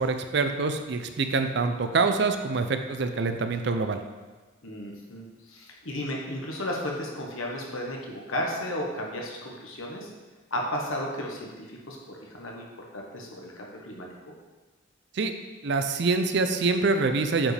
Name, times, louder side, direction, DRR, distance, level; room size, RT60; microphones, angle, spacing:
voice 1, 0.0-4.0 15.1-15.3 15.6-17.5, right 4 dB, 55° right, 7 dB, 0.5 m, -25 dB
voice 2, 4.6-10.1 10.5-14.1, left 1 dB, 80° left, -1 dB, 1.3 m, -34 dB
8.6 x 5.1 x 3.4 m, 1.3 s
head